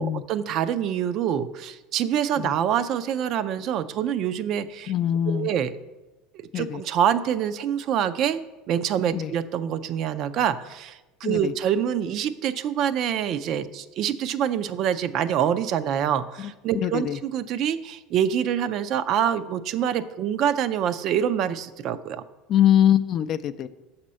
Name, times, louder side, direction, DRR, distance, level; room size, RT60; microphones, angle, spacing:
voice 1, 0.0-4.9 5.3-5.7 6.3-8.4 8.7-22.2, right 9 dB, 55° right, 13 dB, 0.4 m, -26 dB
voice 2, 4.9-5.5 6.5-6.8 9.1-9.3 11.2-11.5 16.4-17.2 22.5-23.7, left 10 dB, 50° left, 11 dB, 0.3 m, -23 dB
6.6 x 4.3 x 6.3 m, 1.1 s
hypercardioid pair, 75°, 0 cm